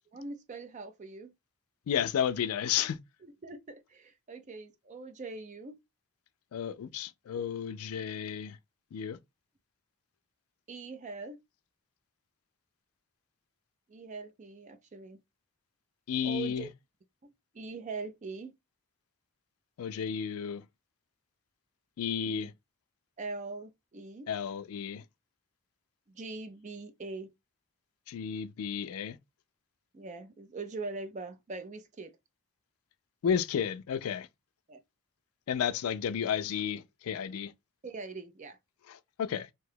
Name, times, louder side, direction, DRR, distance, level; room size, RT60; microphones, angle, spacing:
voice 1, 0.1-1.3 3.2-5.8 10.7-11.4 13.9-15.2 16.2-16.7 17.2-18.5 22.2-22.5 23.2-24.3 26.1-27.3 29.9-32.2 34.7-34.8 37.8-38.6, right 3 dB, 35° right, 0.4 m, -42 dB
voice 2, 1.9-3.0 6.5-8.6 8.9-9.2 16.1-16.7 19.8-20.6 22.0-22.5 24.3-25.0 28.1-29.2 33.2-34.3 35.5-37.5 38.9-39.5, left 8 dB, 75° left, 0.3 m, -32 dB
2.8 x 2.2 x 3.2 m
head